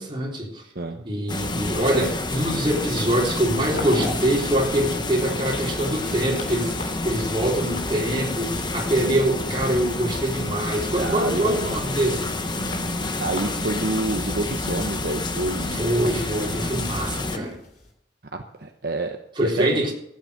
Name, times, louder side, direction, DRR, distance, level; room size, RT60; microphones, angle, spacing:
voice 1, 0.0-0.6 1.0-12.4 15.7-17.6 19.4-19.9, right 1 dB, 30° right, -2 dB, 4.0 m, -24 dB
sound 1, 1.3-17.4, left 2 dB, 25° left, 1.2 m, -29 dB
sound 2, 3.6-17.9, left 1 dB, 55° left, 3.3 m, -39 dB
voice 2, 11.0-11.4 13.2-15.8 18.3-19.7, right 2 dB, 60° right, 4 dB, 1.0 m, -28 dB
14.0 x 9.2 x 6.6 m, 0.77 s
head